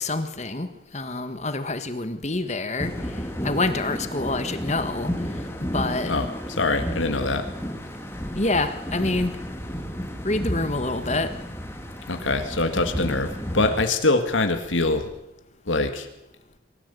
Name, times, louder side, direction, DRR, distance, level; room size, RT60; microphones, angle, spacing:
voice 1, 0.0-2.9 3.4-5.1 5.7-6.1 8.3-9.3 10.2-11.3, left 2 dB, 35° left, 10 dB, 1.5 m, -26 dB
sound 1, 2.8-13.8, equal, 15° left, 2.2 m, -32 dB
voice 2, 6.0-7.5 12.1-15.1 15.7-16.1, left 2 dB, 80° left, 7 dB, 2.0 m, -24 dB
23.5 x 15.0 x 8.4 m, 0.89 s
head